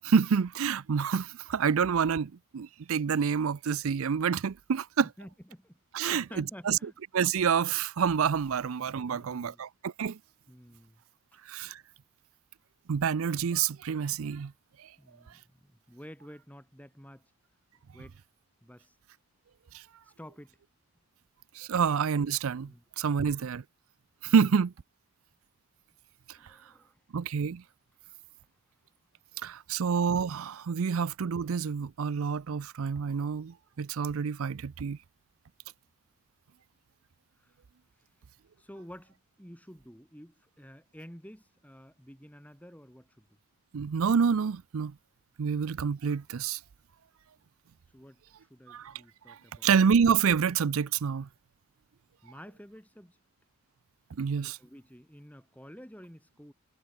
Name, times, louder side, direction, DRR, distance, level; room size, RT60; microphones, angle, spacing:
voice 1, 0.0-5.1 5.9-6.8 7.1-10.2 11.5-11.8 12.9-14.5 19.7-19.8 21.6-23.6 24.2-24.7 27.1-27.6 29.4-35.0 43.7-44.9 45.4-46.6 48.7-48.9 49.3-51.3 54.2-54.6, right 6 dB, 75° right, 0.5 m, -28 dB
voice 2, 5.0-6.9 8.5-8.6 9.1-9.6 10.5-11.0 11.3-11.4 14.9-17.3 17.9-18.2 18.6-19.0 20.0-20.6 22.7-23.2 24.3-24.4 26.3-27.0 37.4-37.6 38.0-38.1 38.6-43.3 47.9-49.7 52.2-53.2 54.4-56.5, equal, 5° left, 7.5 m, -50 dB
head